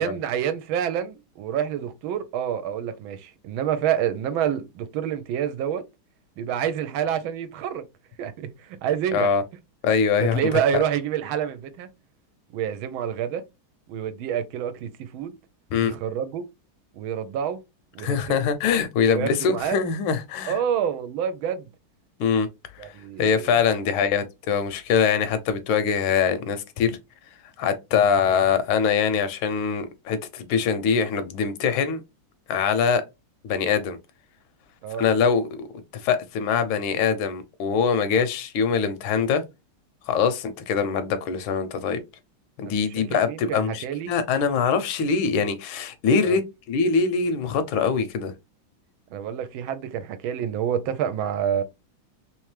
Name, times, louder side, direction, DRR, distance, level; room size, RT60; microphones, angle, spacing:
voice 1, 0.0-5.8 6.4-7.9 8.2-9.3 10.2-11.9 12.5-13.4 13.9-15.4 15.8-16.4 16.9-17.6 17.9-18.2 18.4-18.5 19.1-19.8 20.5-21.7 22.8-23.5 28.2-28.4 34.8-35.0 42.7-44.1 46.2-46.4 49.1-51.6, right 9 dB, 75° right, 1.4 m, -28 dB
voice 2, 9.1-9.4 9.8-10.6 15.7-15.9 18.0-20.6 22.2-22.5 22.7-22.8 23.2-27.0 27.6-32.0 32.5-33.0 33.4-34.0 35.0-35.7 35.9-39.4 40.1-42.0 42.6-46.4 46.7-48.3, left 6 dB, 80° left, 1.4 m, -23 dB
3.5 x 3.2 x 3.2 m
omnidirectional pair, 2.3 m